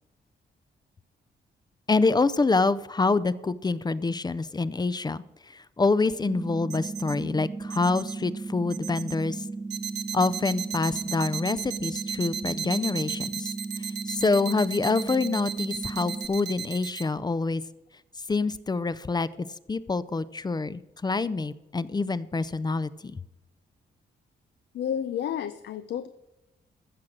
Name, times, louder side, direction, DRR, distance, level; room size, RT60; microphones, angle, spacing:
voice 1, 1.9-9.4 10.1-13.5 14.1-17.6 18.3-19.3 19.7-23.2, left 3 dB, 25° left, 16 dB, 0.5 m, -26 dB
sound 1, 6.3-16.3, right 3 dB, 25° right, 0.9 m, -36 dB
sound 2, 6.7-7.1 7.7-8.1 8.7-9.1 9.7-17.0, right 8 dB, 80° right, 0.9 m, -34 dB
voice 2, 24.7-26.1, left 9 dB, 75° left, 12 dB, 0.5 m, -30 dB
14.5 x 6.5 x 6.2 m, 0.98 s
cardioid pair, 85°, 18 cm